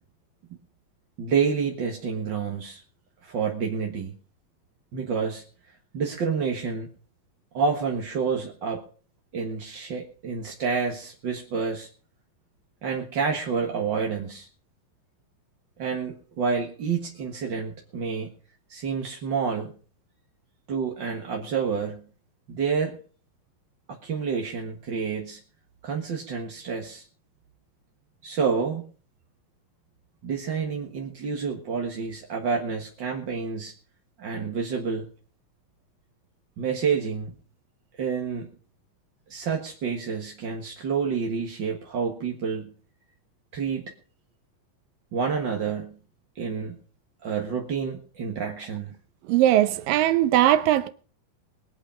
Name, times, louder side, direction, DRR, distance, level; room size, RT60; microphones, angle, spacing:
voice 1, 1.2-2.8 3.2-4.1 4.9-5.4 5.9-6.9 7.5-8.9 9.3-11.9 12.8-14.5 15.8-18.3 18.7-19.7 20.7-22.0 22.5-23.0 23.9-25.4 25.8-27.0 28.2-28.8 30.2-33.7 34.2-35.1 36.6-37.3 38.0-38.5 39.3-42.7 43.5-43.9 45.1-46.0 46.3-46.8 47.2-48.9, right 5 dB, 45° right, 1.6 m, -28 dB
voice 2, 49.3-50.9, right 13 dB, 80° right, 2.6 m, -20 dB
22.0 x 8.3 x 5.1 m
omnidirectional pair, 3.9 m